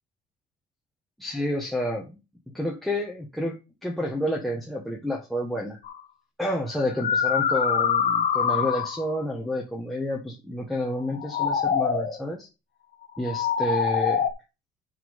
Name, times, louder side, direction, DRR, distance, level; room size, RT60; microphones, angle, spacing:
voice 1, 1.2-2.2 2.5-3.6 3.8-5.8 6.4-12.5 13.2-14.3, left 1 dB, ahead, -3 dB, 1.6 m, -29 dB
sound 1, 5.8-6.0 6.8-9.1 11.0-12.2 13.2-14.3, left 7 dB, 60° left, 1.5 m, -25 dB
7.2 x 5.6 x 5.6 m, 0.28 s
cardioid pair, 110°, 17 cm